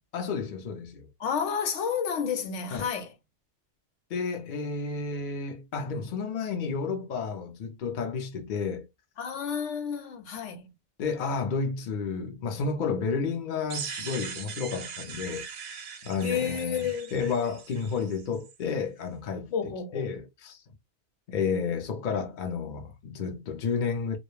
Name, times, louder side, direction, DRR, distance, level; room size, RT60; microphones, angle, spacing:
voice 1, 0.1-1.1 2.7-2.9 4.1-8.9 11.0-20.6 21.3-24.2, left 5 dB, 55° left, 0.6 m, -31 dB
voice 2, 1.2-3.1 9.2-10.7 16.2-17.1 19.5-20.1, left 7 dB, 90° left, 1.0 m, -30 dB
sound 1, 13.7-18.5, right 6 dB, 60° right, 0.6 m, -40 dB
2.3 x 2.0 x 2.9 m
omnidirectional pair, 1.2 m